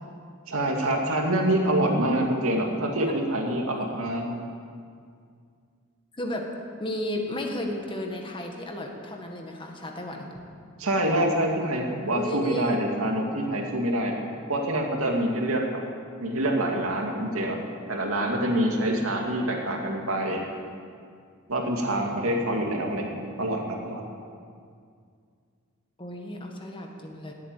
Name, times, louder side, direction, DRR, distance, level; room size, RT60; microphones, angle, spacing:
voice 1, 0.5-4.3 10.8-14.2 14.5-15.6 16.2-17.6 17.9-20.4 21.5-24.0, right 1 dB, 90° right, 0 dB, 2.4 m, -26 dB
voice 2, 6.1-6.4 6.8-10.3 12.1-12.8 26.0-27.3, left 1 dB, 25° left, 2 dB, 1.7 m, -33 dB
17.5 x 8.7 x 9.1 m, 2.2 s
head